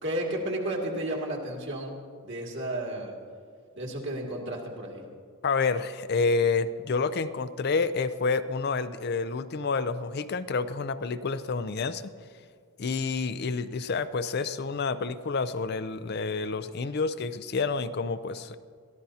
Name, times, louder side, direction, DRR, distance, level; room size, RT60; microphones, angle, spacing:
voice 1, 0.0-2.0 2.2-3.1 3.8-5.0, right 1 dB, 55° right, -1 dB, 2.3 m, -32 dB
voice 2, 5.4-12.0 12.8-18.5, left 4 dB, 45° left, 11 dB, 0.5 m, -29 dB
22.0 x 14.5 x 2.8 m, 2.1 s
head